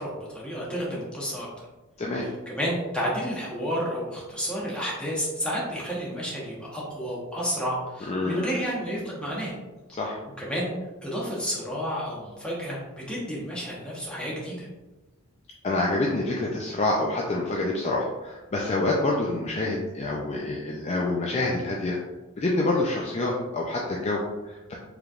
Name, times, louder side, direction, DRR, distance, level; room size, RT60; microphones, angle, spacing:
voice 1, 0.0-1.6 2.2-9.5 10.4-10.7 11.0-14.7, equal, 5° left, -6 dB, 1.1 m, -31 dB
voice 2, 8.1-8.5 9.9-10.2 15.6-22.0 22.4-24.7, left 2 dB, 30° left, -3 dB, 0.4 m, -27 dB
4.8 x 3.3 x 2.4 m, 1.1 s
head